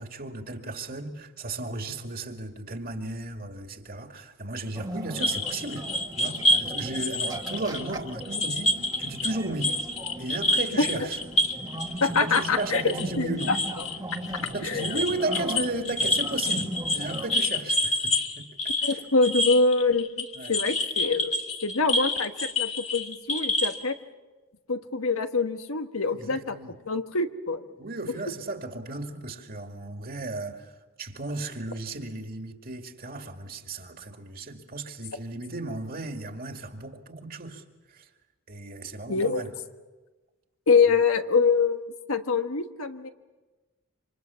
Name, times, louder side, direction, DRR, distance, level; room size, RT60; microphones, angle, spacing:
voice 1, 0.0-5.9 6.2-9.8 10.2-11.2 12.2-13.5 14.4-18.4 18.8-19.0 20.3-20.5 26.1-26.7 27.8-30.7 31.0-37.6 37.9-38.1 38.5-39.5, right 2 dB, 45° right, 4 dB, 2.3 m, -35 dB
sound 1, 4.7-17.4, right 1 dB, 20° right, 1.4 m, -38 dB
sound 2, 5.2-9.3 9.6-23.8, left 1 dB, 30° left, 2.4 m, -28 dB
voice 2, 12.0-12.8 13.2-13.6 14.6-15.0 18.8-23.9 24.7-26.6 26.9-27.7 39.1-39.4 40.7-41.8 42.1-43.1, left 4 dB, 90° left, 7 dB, 1.5 m, -25 dB
27.5 x 26.0 x 7.1 m, 1.2 s
head